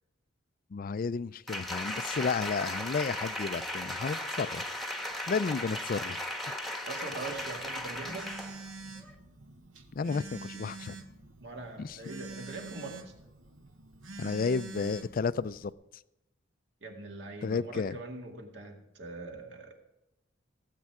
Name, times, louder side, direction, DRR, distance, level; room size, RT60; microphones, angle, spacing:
voice 1, 0.7-4.6 5.3-6.2 9.9-11.0 11.8-12.0 14.2-15.7 17.4-18.0, left 5 dB, 45° left, 17 dB, 0.4 m, -32 dB
Applause, 1.5-8.6 9.0-9.1, left 1 dB, ahead, 1.1 m, -36 dB
voice 2, 6.9-8.3 11.4-13.1 16.8-19.8, right 3 dB, 60° right, 2 dB, 2.1 m, -42 dB
Telephone, 7.2-15.7, right 3 dB, 85° right, 1.2 m, -47 dB
17.0 x 8.4 x 4.8 m, 0.91 s
head